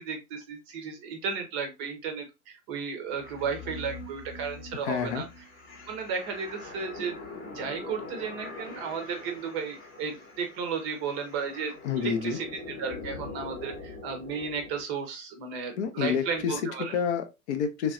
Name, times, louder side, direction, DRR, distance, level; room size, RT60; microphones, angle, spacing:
voice 1, 0.0-5.2 5.9-7.2 7.5-16.9, right 6 dB, 25° right, 0.6 m, -34 dB
sound 1, 3.1-14.8, left 3 dB, 20° left, 0.9 m, -43 dB
voice 2, 4.8-5.2 11.8-12.4 15.8-16.6 16.9-17.9, left 7 dB, 50° left, 0.6 m, -29 dB
3.2 x 2.6 x 2.4 m
hypercardioid pair, 125°, 45 cm